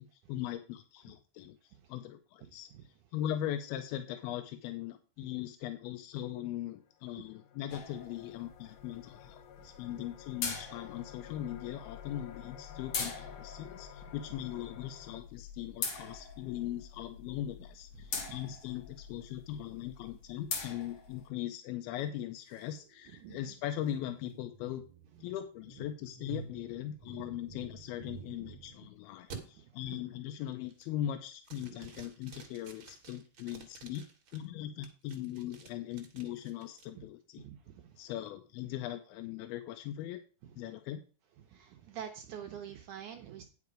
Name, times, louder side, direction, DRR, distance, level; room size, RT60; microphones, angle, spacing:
voice 1, 0.0-1.6 1.9-2.7 3.1-24.8 25.2-34.0 34.3-37.4 38.0-40.2 40.6-41.0, left 12 dB, 90° left, 7 dB, 2.6 m, -40 dB
voice 2, 2.4-2.8 18.3-18.4 23.2-23.5 29.9-30.0 36.9-37.0 37.4-37.9 41.5-43.4, right 9 dB, 70° right, 5 dB, 2.0 m, -46 dB
sound 1, 6.3-6.4 6.8-15.2, left 8 dB, 75° left, 2.4 m, -53 dB
sound 2, 7.7-21.3, left 5 dB, 55° left, 2.0 m, -43 dB
sound 3, 22.5-28.8 29.3-29.4 29.9-30.3 30.7-31.1 31.4-34.4 34.8-36.8, right 4 dB, 50° right, 1.8 m, -51 dB
9.6 x 5.8 x 4.9 m, 0.36 s
omnidirectional pair, 4.3 m